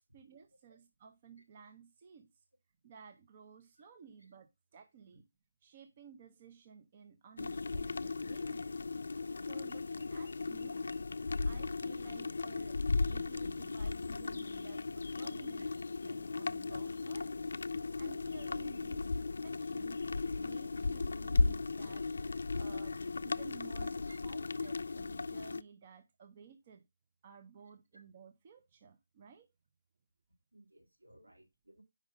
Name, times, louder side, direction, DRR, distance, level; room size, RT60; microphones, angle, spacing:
voice 1, 0.1-2.3 2.8-5.2 5.6-8.7 9.4-10.8 11.4-12.8 13.1-15.7 16.0-17.4 18.0-20.0 20.4-22.1 22.6-26.8 27.2-29.5, right 6 dB, 40° right, 0.7 m, -56 dB
sound 1, 7.4-25.6, left 3 dB, 70° left, 0.3 m, -36 dB
voice 2, 30.5-31.8, right 1 dB, 90° right, 2.1 m, -60 dB
5.0 x 3.6 x 5.2 m
figure-of-eight pair, 150°, 0 cm